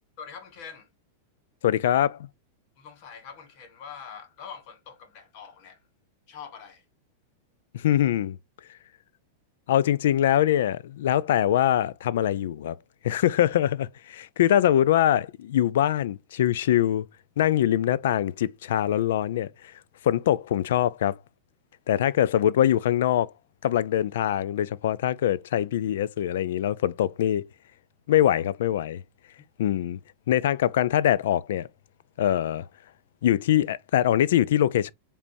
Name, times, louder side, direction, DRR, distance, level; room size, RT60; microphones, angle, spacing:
voice 1, 0.2-0.9 2.8-5.9 6.3-6.8, left 7 dB, 40° left, 1.2 m, -44 dB
voice 2, 1.6-2.3 7.7-8.4 9.7-12.8 13.0-17.1 17.4-19.5 20.0-21.2 21.9-23.3 23.6-27.5 28.1-29.0 29.6-30.0 30.3-31.7 32.2-32.7 33.2-34.9, left 11 dB, 70° left, 0.4 m, -23 dB
5.2 x 3.4 x 2.6 m
supercardioid pair, 170°, 0 cm